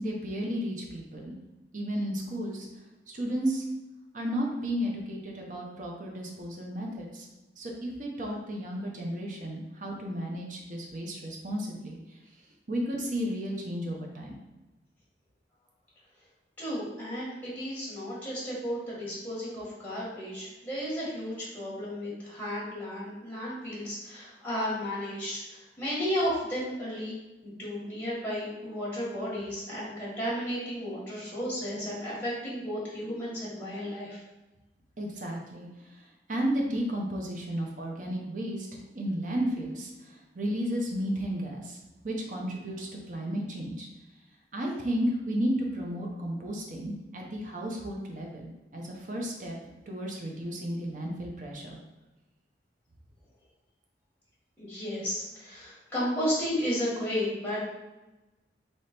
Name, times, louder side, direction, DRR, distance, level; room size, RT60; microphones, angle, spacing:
voice 1, 0.0-1.3 1.7-2.7 3.1-3.6 4.1-7.3 7.6-12.0 12.7-14.3 35.0-35.7 36.3-41.8 42.0-43.9 44.5-49.6 49.9-51.8, equal, 45° right, 0 dB, 0.8 m, -33 dB
voice 2, 16.6-27.1 27.4-34.2 54.6-57.7, equal, 10° left, -8 dB, 1.5 m, -33 dB
3.3 x 3.1 x 4.2 m, 1.1 s
head